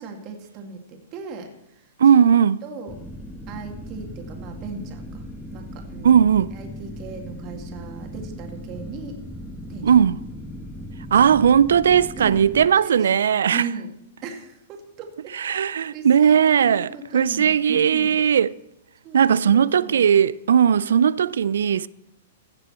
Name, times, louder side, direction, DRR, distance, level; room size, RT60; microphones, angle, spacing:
voice 1, 0.0-1.9 2.6-3.0 3.5-5.3 5.5-6.2 6.5-9.2 9.7-9.9 12.1-13.2 13.5-13.9 14.2-18.1 19.0-19.2 19.5-20.1, right 5 dB, 40° right, 2.1 m, -37 dB
voice 2, 2.0-2.6 6.0-6.5 9.8-10.2 11.1-13.6 15.3-18.5 19.1-21.9, right 8 dB, 75° right, 0.3 m, -17 dB
sound 1, 2.9-12.7, equal, 5° left, 1.1 m, -38 dB
16.0 x 6.7 x 4.4 m
hypercardioid pair, 110°, 0 cm